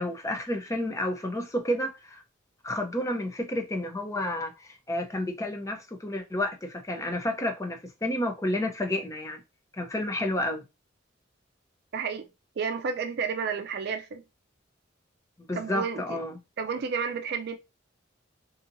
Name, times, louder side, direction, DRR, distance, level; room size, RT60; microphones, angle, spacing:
voice 1, 0.0-2.2 2.6-9.4 9.7-10.6 15.5-16.3, left 1 dB, 15° left, 0.5 m, -30 dB
voice 2, 11.9-12.3 12.6-14.2 15.5-16.2 16.6-17.6, right 6 dB, 55° right, 0.4 m, -31 dB
2.8 x 2.7 x 2.6 m
head